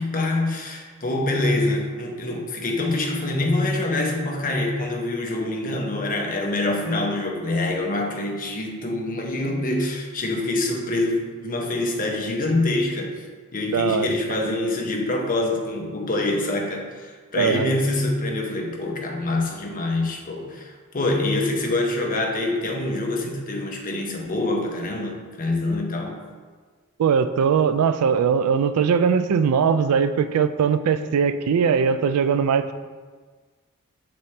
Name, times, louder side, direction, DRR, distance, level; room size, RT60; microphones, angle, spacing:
voice 1, 0.0-13.2 13.5-26.2, left 2 dB, 40° left, 0 dB, 0.8 m, -25 dB
voice 2, 13.7-14.1 17.4-17.7 27.0-32.7, right 6 dB, 80° right, 11 dB, 0.3 m, -20 dB
6.9 x 4.2 x 3.2 m, 1.5 s
head